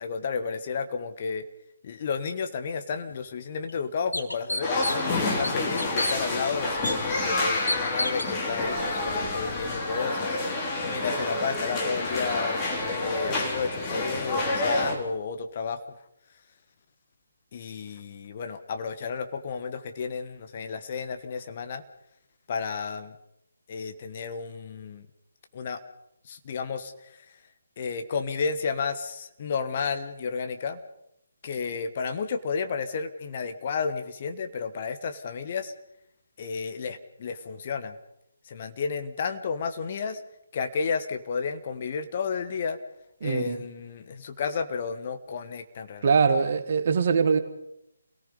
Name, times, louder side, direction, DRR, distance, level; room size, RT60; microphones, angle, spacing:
voice 1, 0.0-1.4 1.8-10.4 10.9-12.6 13.0-15.8 17.5-21.8 22.5-23.2 23.7-25.1 25.5-25.8 26.3-26.9 27.8-30.8 31.4-35.7 36.4-38.0 38.4-40.2 40.5-42.8 43.2-46.1, left 5 dB, 35° left, 8 dB, 1.4 m, -32 dB
sound 1, 3.1-3.2 3.7-3.8 4.1-5.1 5.4-6.2 6.8-7.0 7.7-8.3, left 1 dB, 80° left, 2.2 m, -29 dB
sound 2, 4.6-15.0, left 2 dB, 20° left, 3.4 m, -28 dB
voice 2, 43.2-43.6 46.0-47.4, right 5 dB, 40° right, 8 dB, 1.7 m, -22 dB
28.5 x 18.5 x 5.3 m, 0.80 s
figure-of-eight pair, 145°, 0 cm